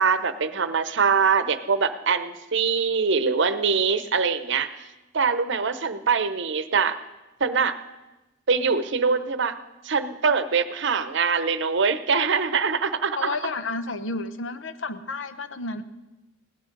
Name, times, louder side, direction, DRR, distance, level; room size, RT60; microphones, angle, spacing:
voice 1, 0.0-4.8 5.1-7.0 7.4-7.7 8.5-9.6 9.8-13.3, right 5 dB, 65° right, 12 dB, 0.8 m, -23 dB
voice 2, 13.2-15.8, left 3 dB, 75° left, 11 dB, 0.9 m, -31 dB
17.0 x 12.0 x 5.3 m, 1.1 s
head